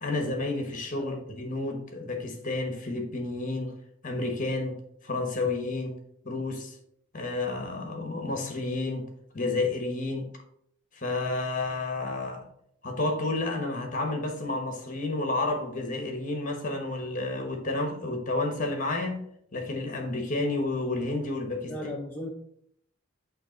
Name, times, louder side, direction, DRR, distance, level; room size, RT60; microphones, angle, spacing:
voice 1, 0.0-3.7 4.0-4.8 5.0-6.0 6.2-6.7 7.1-9.1 9.3-10.3 10.9-12.5 12.8-21.7, left 2 dB, 40° left, 1.1 m, -30 dB
voice 2, 21.7-22.3, left 1 dB, 10° left, 0.6 m, -36 dB
6.6 x 2.9 x 5.1 m
head